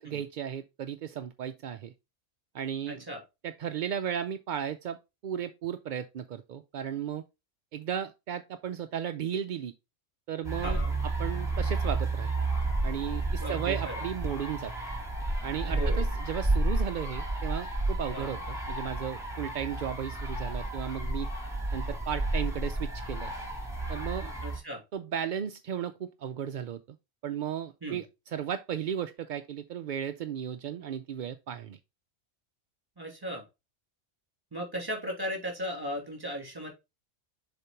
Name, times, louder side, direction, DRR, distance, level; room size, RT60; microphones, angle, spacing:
voice 1, 0.0-1.9 2.5-3.0 3.4-5.0 5.2-7.2 7.7-9.7 10.3-10.8 11.2-12.3 12.8-14.7 15.4-21.3 21.7-23.3 23.9-24.3 24.9-26.8 27.2-31.8, right 9 dB, 60° right, 0.5 m, -35 dB
voice 2, 2.9-3.2 10.6-10.9 13.3-14.0 15.6-16.0 18.1-18.4 24.4-24.8 27.8-28.0 33.0-33.4 34.5-36.7, equal, 20° right, 2.9 m, -37 dB
sound 1, 10.4-24.6, right 2 dB, 5° right, 3.1 m, -31 dB
6.8 x 4.1 x 4.5 m
omnidirectional pair, 1.2 m